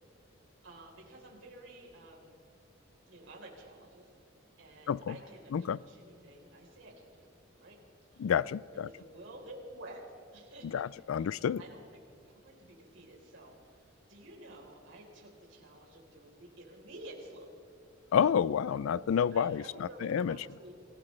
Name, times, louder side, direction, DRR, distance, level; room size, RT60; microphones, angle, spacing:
voice 1, 0.6-2.4 3.1-4.1 4.6-7.3 7.6-8.3 8.7-10.1 10.3-10.7 11.1-12.0 12.3-17.5 19.3-20.7, right 1 dB, 70° right, -1 dB, 3.8 m, -51 dB
voice 2, 8.2-8.9 10.6-11.6 18.1-20.4, left 7 dB, 85° left, 21 dB, 0.3 m, -29 dB
26.0 x 15.5 x 3.2 m, 2.7 s
head